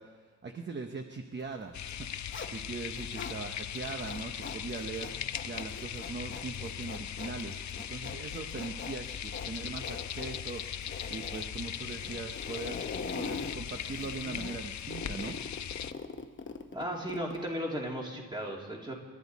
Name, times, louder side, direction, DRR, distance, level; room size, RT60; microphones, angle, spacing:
voice 1, 0.0-7.6 7.9-12.9 13.1-15.4, right 4 dB, 35° right, 5 dB, 0.9 m, -41 dB
sound 1, 1.7-15.9, left 9 dB, 60° left, 0.5 m, -39 dB
Zipper (clothing), 1.8-3.4 3.8-17.5, left 4 dB, 35° left, 0.9 m, -43 dB
voice 2, 16.7-18.9, equal, 15° right, -1 dB, 2.6 m, -35 dB
28.5 x 12.5 x 4.1 m, 1.5 s
wide cardioid pair, 160°, 33 cm